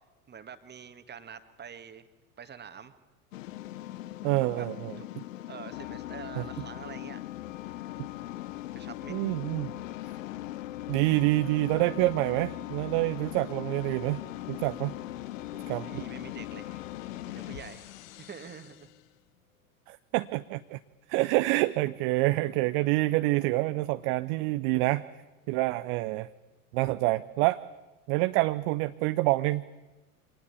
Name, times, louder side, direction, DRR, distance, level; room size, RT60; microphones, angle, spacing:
voice 1, 0.3-2.0 2.4-2.9 4.5-4.7 5.0-5.1 5.5-7.2 8.7-9.2 15.5-16.8 17.3-17.9 18.2-18.9, right 7 dB, 25° right, 10 dB, 1.9 m, -46 dB
sound 1, 3.3-19.0, left 15 dB, 60° left, 1.1 m, -40 dB
voice 2, 4.2-5.2 6.4-6.5 9.1-9.7 10.9-14.2 14.5-14.9 15.7-16.0 19.9-20.8 21.1-25.0 25.5-26.3 26.7-27.6 28.1-29.6, right 19 dB, 45° right, 13 dB, 0.7 m, -27 dB
25.5 x 19.5 x 8.4 m, 1.1 s
figure-of-eight pair, 80°, 44 cm